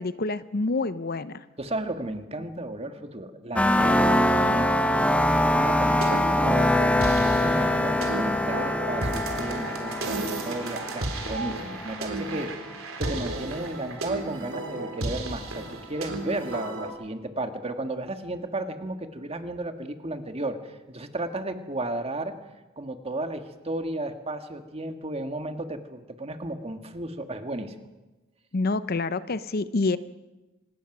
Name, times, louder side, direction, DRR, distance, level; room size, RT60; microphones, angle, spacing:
voice 1, 0.0-1.4 28.5-30.0, left 3 dB, 50° left, 14 dB, 0.6 m, -27 dB
voice 2, 1.6-5.1 5.5-22.3 22.8-27.7, right 1 dB, 30° right, 7 dB, 1.6 m, -34 dB
sound 1, 3.6-12.2, left 1 dB, 5° left, 0.8 m, -24 dB
sound 2, 5.8-16.9, right 2 dB, 90° right, 3.4 m, -34 dB
25.5 x 19.0 x 6.1 m, 1.1 s
head